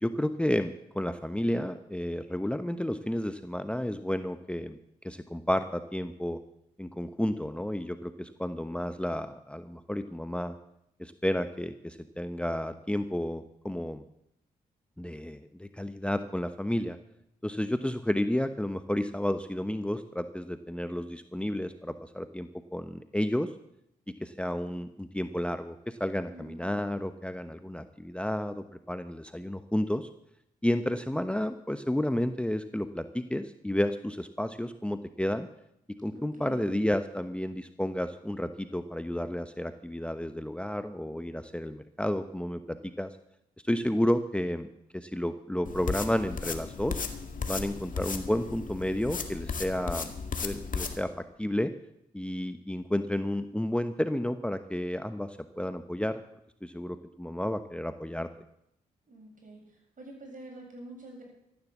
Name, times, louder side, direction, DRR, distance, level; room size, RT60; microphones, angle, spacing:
voice 1, 0.0-4.8 5.0-6.4 6.8-10.6 11.0-14.0 15.0-17.0 17.4-23.5 24.2-30.1 30.6-35.5 36.0-43.1 43.6-47.0 47.5-50.1 50.4-51.1 51.4-51.7 52.1-56.2 56.6-58.3, left 1 dB, 5° left, 10 dB, 1.0 m, -31 dB
voice 2, 26.3-26.9 36.1-36.8 47.4-47.7 59.1-59.6 60.0-61.2, right 1 dB, 50° right, 1 dB, 7.6 m, -46 dB
sound 1, 45.6-51.0, left 5 dB, 50° left, 2.0 m, -35 dB
14.0 x 11.0 x 7.3 m, 0.79 s
hypercardioid pair, 40°, 17 cm